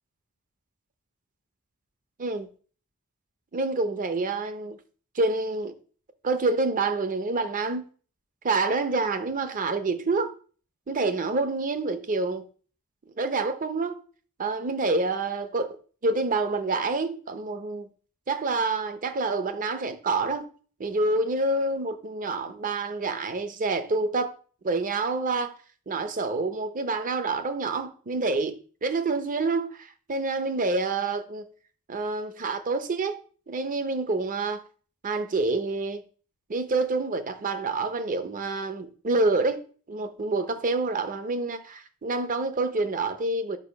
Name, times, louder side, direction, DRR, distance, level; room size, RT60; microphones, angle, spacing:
voice 1, 3.5-4.8 5.1-5.7 6.2-7.8 8.4-10.3 10.9-12.5 13.2-14.0 14.4-15.8 16.0-17.9 18.3-20.5 20.8-24.4 24.6-25.5 25.9-31.5 31.9-33.2 33.5-34.6 35.0-36.0 36.5-39.6 39.9-43.6, right 3 dB, 35° right, 0.7 m, -27 dB
4.8 x 4.6 x 5.7 m
head